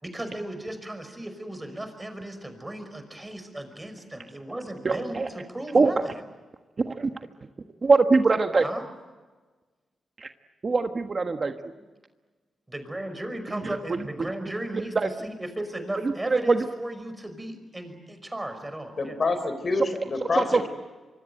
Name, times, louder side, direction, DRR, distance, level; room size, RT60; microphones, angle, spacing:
voice 1, 0.0-6.0 8.6-8.8 12.7-14.9 15.2-19.2, right 1 dB, 15° right, 8 dB, 5.5 m, -36 dB
voice 2, 4.8-5.3 5.7-6.0 6.8-7.1 7.8-8.7 10.2-10.3 10.6-11.7 13.5-14.3 14.7-15.1 16.0-16.7 20.3-20.7, right 3 dB, 40° right, 6 dB, 1.3 m, -23 dB
voice 3, 19.0-20.7, left 3 dB, 45° left, 10 dB, 3.9 m, -27 dB
25.0 x 24.0 x 9.2 m, 1.3 s
cardioid pair, 85°, 0 cm